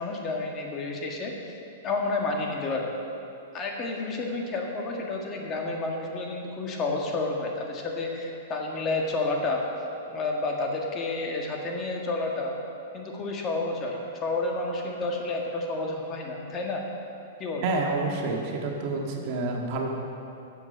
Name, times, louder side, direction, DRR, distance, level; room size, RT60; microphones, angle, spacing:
voice 1, 0.0-1.3 1.8-2.9 3.5-9.6 10.1-12.5 12.9-16.8 17.4-17.7, left 3 dB, 30° left, 0 dB, 1.7 m, -30 dB
voice 2, 17.6-19.9, right 3 dB, 50° right, 0 dB, 1.8 m, -28 dB
14.0 x 7.2 x 5.3 m, 2.7 s
hypercardioid pair, 125°, 0 cm